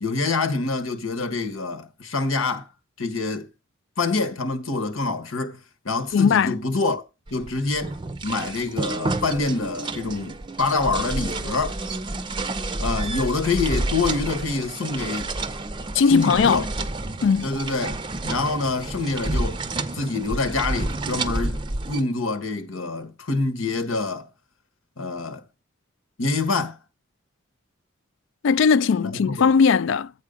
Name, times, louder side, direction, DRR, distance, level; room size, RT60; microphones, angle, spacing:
voice 1, 0.0-2.7 3.0-3.5 4.0-5.6 5.8-7.0 7.3-8.0 8.2-11.8 12.8-15.3 16.1-16.6 17.4-19.6 19.9-24.3 25.0-25.4 26.2-26.8 29.0-29.5, left 3 dB, 85° left, 1.3 m, -26 dB
voice 2, 6.1-6.6 15.9-16.7 17.2-17.5 28.4-30.1, left 5 dB, 65° left, 0.3 m, -18 dB
sound 1, 7.3-22.0, right 2 dB, 25° right, 0.5 m, -30 dB
8.3 x 4.6 x 5.1 m
head